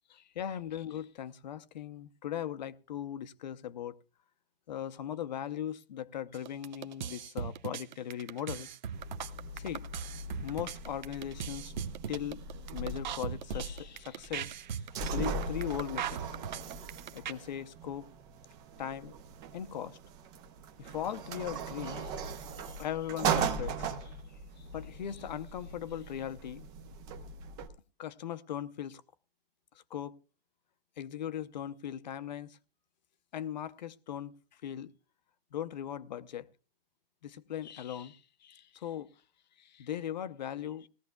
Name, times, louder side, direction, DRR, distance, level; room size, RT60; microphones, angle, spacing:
voice 1, 0.1-4.0 4.7-8.7 9.6-9.9 10.4-11.7 12.1-12.4 12.7-14.6 14.9-16.4 17.1-18.1 18.8-19.1 19.5-20.0 20.8-24.2 24.6-26.7 28.0-29.0 29.9-30.2 31.0-32.6 33.3-34.3 34.6-34.9 35.5-36.5 37.2-39.1 39.6-40.9, left 10 dB, 50° left, 0.7 m, -39 dB
sound 1, 6.3-17.3, right 8 dB, 50° right, 0.7 m, -39 dB
sound 2, 8.9-27.7, right 5 dB, 15° right, 0.5 m, -39 dB
19.5 x 14.5 x 2.3 m
hypercardioid pair, 145°, 30 cm